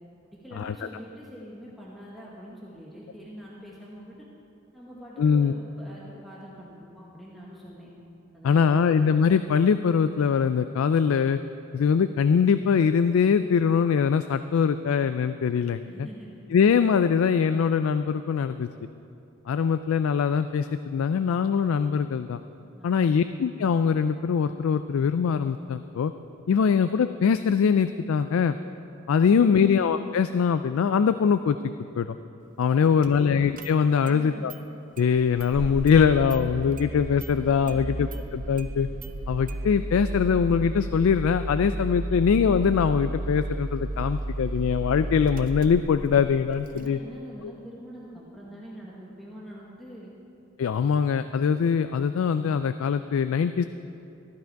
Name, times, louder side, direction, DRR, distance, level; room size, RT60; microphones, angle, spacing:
voice 1, 0.2-4.2 4.7-7.9 8.3-8.9 15.8-16.4 22.8-23.2 34.0-34.5 37.6-37.9 46.7-50.1, equal, ahead, -6 dB, 1.3 m, -44 dB
voice 2, 5.2-5.5 8.4-11.4 11.7-15.8 16.5-18.7 19.5-22.4 22.8-26.1 26.5-28.6 29.1-31.6 32.0-32.2 32.6-34.5 35.0-38.9 39.3-47.0 50.6-53.6, left 6 dB, 70° left, 10 dB, 0.3 m, -22 dB
Engine starting, 33.0-33.1 33.6-34.2 34.5-34.6 35.0-46.9, right 1 dB, 40° right, 0.6 m, -33 dB
14.5 x 11.5 x 4.6 m, 2.7 s
head